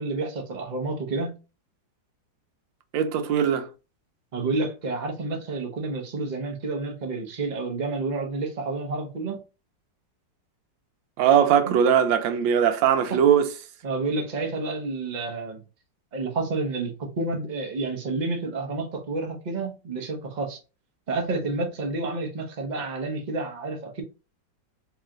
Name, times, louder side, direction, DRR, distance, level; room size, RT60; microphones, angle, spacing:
voice 1, 0.0-1.4 4.3-9.4 11.6-11.7 13.8-15.6 16.1-20.6 21.1-24.0, right 3 dB, 40° right, 0.6 m, -29 dB
voice 2, 2.9-3.7 11.2-13.5, right 8 dB, 85° right, 1.4 m, -20 dB
3.1 x 2.9 x 3.6 m
omnidirectional pair, 2.0 m